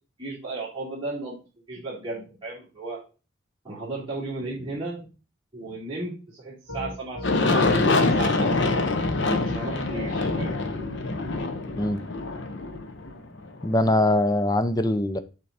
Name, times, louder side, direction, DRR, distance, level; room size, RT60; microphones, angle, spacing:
voice 1, 0.2-1.4 1.7-3.0 3.6-5.1 5.5-8.8 9.4-10.6, right 2 dB, 25° right, 2.8 m, -35 dB
Piano, 6.7-13.1, left 1 dB, 80° left, 3.0 m, -38 dB
Aircraft, 7.2-13.9, left 3 dB, 60° left, 0.9 m, -25 dB
voice 2, 13.6-15.2, left 1 dB, 20° left, 0.5 m, -22 dB
7.0 x 4.0 x 5.0 m
head